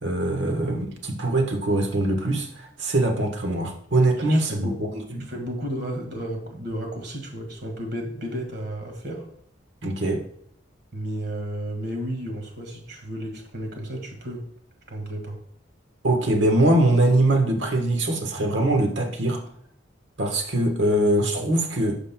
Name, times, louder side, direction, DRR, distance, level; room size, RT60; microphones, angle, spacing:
voice 1, 0.0-5.3 9.8-10.2 16.0-19.4 20.2-21.9, right 1 dB, 80° right, 3 dB, 1.3 m, -22 dB
voice 2, 4.2-4.8 5.3-9.3 10.9-14.4 14.9-15.4, equal, 60° right, 2 dB, 1.9 m, -33 dB
11.5 x 6.3 x 2.3 m, 0.68 s
head